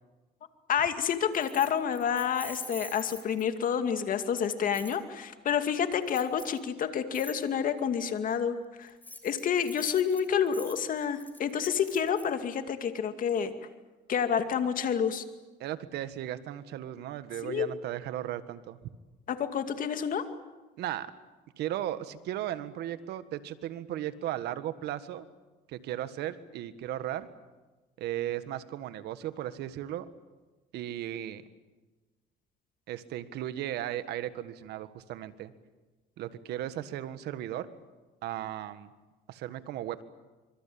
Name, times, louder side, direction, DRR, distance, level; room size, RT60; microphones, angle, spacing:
voice 1, 0.7-8.9 9.2-13.5 14.1-15.2 17.4-17.7 19.3-20.3, left 7 dB, 55° left, 8 dB, 2.4 m, -29 dB
Keys jangling, 1.3-3.7 4.7-5.0 6.1-6.6 7.1-7.4 8.9-12.3, left 2 dB, 10° left, 4.4 m, -46 dB
voice 2, 15.6-18.8 20.8-21.1 21.6-25.3 25.7-27.3 28.0-30.1 30.7-31.4 32.9-35.5 36.2-37.7 38.2-38.9 39.3-40.0, right 12 dB, 80° right, 12 dB, 1.6 m, -36 dB
25.0 x 24.5 x 8.7 m, 1.2 s
cardioid pair, 110°, 17 cm